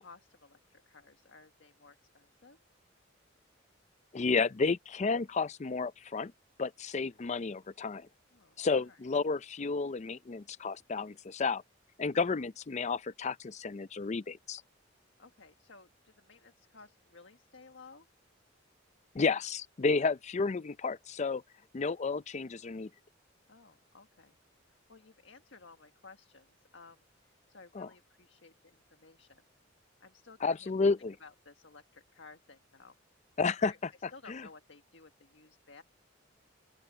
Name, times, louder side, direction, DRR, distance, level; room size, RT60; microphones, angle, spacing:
voice 1, 0.0-2.6 8.3-9.0 12.3-12.4 15.2-18.1 23.5-24.4 24.9-27.0 27.5-29.4 30.0-30.7 31.2-33.0 33.6-33.8 34.1-35.8, left 4 dB, 70° left, 1.7 m, -56 dB
voice 2, 4.1-6.3 6.6-8.1 8.6-11.6 12.0-14.6 19.1-21.4 21.7-22.9 27.7-27.9 30.4-31.1 33.4-33.7 34.0-34.4, left 4 dB, 35° left, 0.5 m, -31 dB
open air
head